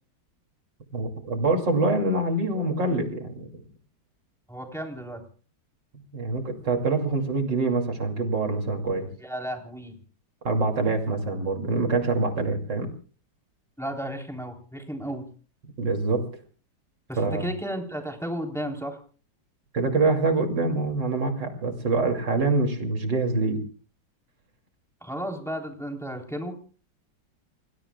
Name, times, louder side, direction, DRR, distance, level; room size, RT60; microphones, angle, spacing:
voice 1, 0.9-3.6 6.1-9.1 10.4-12.9 15.8-16.2 17.2-17.5 19.7-23.6, right 3 dB, 70° right, 3 dB, 3.3 m, -25 dB
voice 2, 4.5-5.2 9.2-10.0 13.8-15.3 17.1-19.0 25.0-26.6, equal, ahead, 2 dB, 3.5 m, -33 dB
28.5 x 20.5 x 2.3 m, 0.41 s
omnidirectional pair, 2.0 m